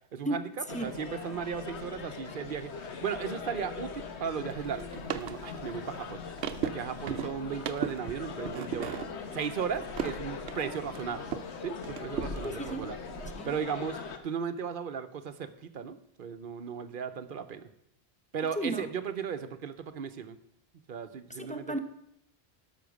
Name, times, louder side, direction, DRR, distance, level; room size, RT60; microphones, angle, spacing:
voice 1, 0.1-6.2 6.6-9.0 9.3-11.3 11.6-13.0 13.4-17.7 18.3-20.4 20.9-21.8, right 7 dB, 55° right, 11 dB, 0.9 m, -36 dB
sound 1, 0.7-14.2, left 5 dB, 90° left, 1.3 m, -41 dB
Vehicle horn car horn honking, 0.9-1.8, left 3 dB, 70° left, 4.2 m, -59 dB
sound 2, 4.5-11.5 11.8-13.3, right 8 dB, 80° right, 0.9 m, -38 dB
voice 2, 12.4-12.8 13.4-13.5 18.6-18.9 21.4-21.8, right 1 dB, 10° left, 6 dB, 0.7 m, -33 dB
12.0 x 6.0 x 6.3 m, 0.77 s
omnidirectional pair, 1.1 m